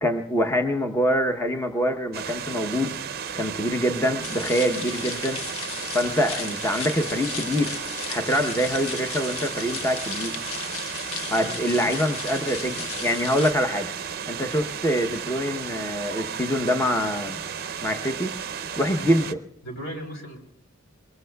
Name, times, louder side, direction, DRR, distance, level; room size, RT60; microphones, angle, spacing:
voice 1, 0.0-2.9 3.3-5.4 5.9-7.8 8.1-10.3 11.3-13.9 14.3-17.4 17.8-18.4 18.8-19.2, equal, 10° left, 5 dB, 0.8 m, -25 dB
sound 1, 2.1-19.3, right 7 dB, 45° right, 0.6 m, -34 dB
sound 2, 4.2-13.5, left 6 dB, 85° left, 1.1 m, -35 dB
voice 2, 11.4-11.9 18.8-19.3 19.6-20.4, equal, 65° left, 2 dB, 3.2 m, -38 dB
23.5 x 21.0 x 2.3 m, 0.72 s
head